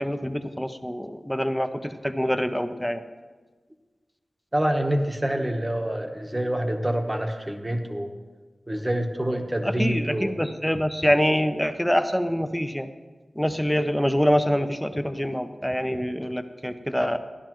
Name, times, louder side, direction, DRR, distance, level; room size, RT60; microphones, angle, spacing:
voice 1, 0.0-1.7 2.0-3.0 9.6-12.9 13.4-17.2, equal, 5° left, 9 dB, 0.6 m, -25 dB
voice 2, 4.5-8.1 8.7-10.3, right 1 dB, 15° right, 4 dB, 1.0 m, -26 dB
13.5 x 11.5 x 3.0 m, 1.3 s
wide cardioid pair, 90°, 0 cm